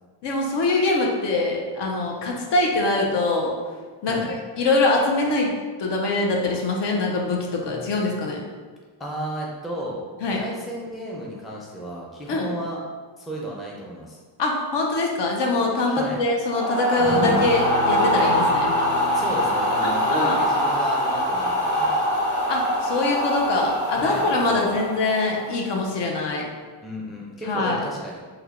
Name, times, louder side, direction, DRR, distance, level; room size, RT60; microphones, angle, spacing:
voice 1, 0.2-3.5 4.0-5.5 5.8-8.4 10.2-10.4 12.3-12.5 14.4-18.7 19.8-20.4 22.5-26.4 27.5-27.8, left 2 dB, 65° left, -1 dB, 0.7 m, -23 dB
voice 2, 9.0-10.0 10.3-12.8 13.2-14.2 15.8-16.2 19.1-22.0 24.0-24.8 26.8-28.2, right 1 dB, ahead, -3 dB, 0.4 m, -33 dB
sound 1, 16.5-25.6, equal, 40° left, 1.1 m, -23 dB
sound 2, 17.0-23.8 24.1-24.2 24.5-24.7, right 1 dB, 80° left, 1.2 m, -33 dB
3.3 x 2.2 x 3.4 m, 1.5 s
cardioid pair, 115°, 45 cm